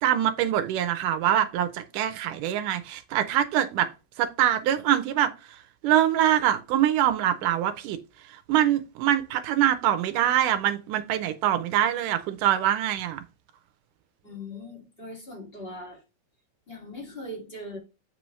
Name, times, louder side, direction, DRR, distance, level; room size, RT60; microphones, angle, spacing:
voice 1, 0.0-3.9 4.2-8.0 8.3-13.2, right 11 dB, 80° right, 1.9 m, -24 dB
voice 2, 14.2-16.0 16.7-17.8, left 1 dB, 25° left, 1.3 m, -40 dB
7.4 x 5.4 x 3.1 m
omnidirectional pair, 4.4 m